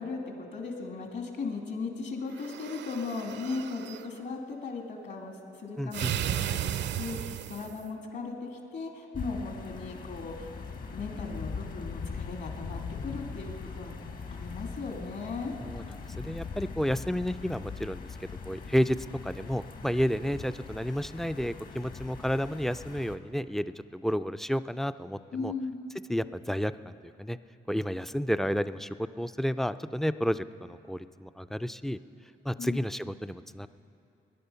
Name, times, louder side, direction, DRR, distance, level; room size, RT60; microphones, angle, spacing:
voice 1, 0.0-10.5 10.9-13.9 14.3-15.5 25.3-25.8 32.6-32.8, left 4 dB, 60° left, 2 dB, 2.6 m, -37 dB
sound 1, 2.3-4.1 5.9-7.9, right 10 dB, 65° right, 0.5 m, -34 dB
voice 2, 5.8-6.1 15.6-15.8 16.1-19.0 19.2-25.5 26.1-26.9 27.2-27.4 27.7-32.0 32.5-33.7, equal, ahead, 13 dB, 0.3 m, -31 dB
sound 2, 9.1-23.2, left 5 dB, 45° left, 1.2 m, -41 dB
20.5 x 10.5 x 5.7 m, 2.7 s
cardioid pair, 90°, 20 cm